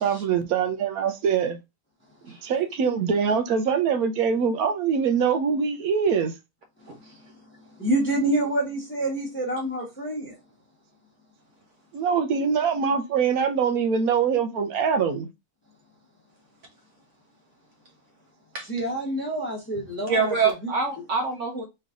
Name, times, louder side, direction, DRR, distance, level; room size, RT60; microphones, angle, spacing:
voice 1, 0.0-1.6 2.2-6.3 11.9-15.3, right 6 dB, 80° right, 1.2 m, -23 dB
voice 2, 7.5-10.4 18.7-20.4 20.6-20.7, right 1 dB, 10° left, 0.9 m, -27 dB
voice 3, 20.1-21.7, right 5 dB, 60° right, 1.1 m, -25 dB
3.4 x 3.2 x 3.6 m
omnidirectional pair, 1.5 m